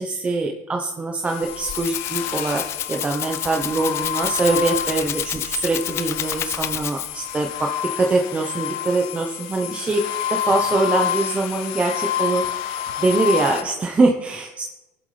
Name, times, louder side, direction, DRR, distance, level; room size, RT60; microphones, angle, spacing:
voice 1, 0.0-2.6 2.9-7.7 7.9-10.0 10.3-14.6, right 3 dB, 20° right, 2 dB, 0.9 m, -23 dB
sound 1, 1.2-13.6, left 10 dB, 75° left, 0.8 m, -29 dB
Rattle (instrument), 1.4-7.3, left 10 dB, 40° left, 0.5 m, -30 dB
19.5 x 7.9 x 3.4 m, 1.0 s
supercardioid pair, 115°, 7 cm